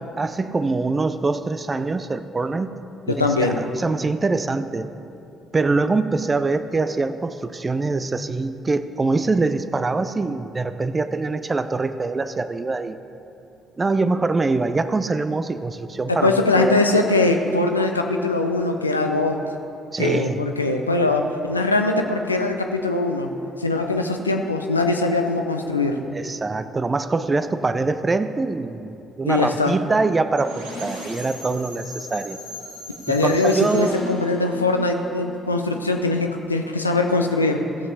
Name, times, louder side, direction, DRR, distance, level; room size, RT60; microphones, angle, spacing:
voice 1, 0.2-2.8 3.1-4.9 5.5-13.0 13.8-16.9 19.9-20.4 26.1-32.4 33.1-34.1, right 3 dB, 25° right, 12 dB, 0.5 m, -24 dB
voice 2, 3.1-3.6 16.1-19.4 20.0-23.3 23.6-26.0 29.3-29.7 33.1-37.6, left 2 dB, 85° left, 4 dB, 0.5 m, -21 dB
sound 1, 30.4-36.2, left 2 dB, 80° right, 2.7 m, -38 dB
16.5 x 7.3 x 4.0 m, 2.8 s
figure-of-eight pair, 45°, 0 cm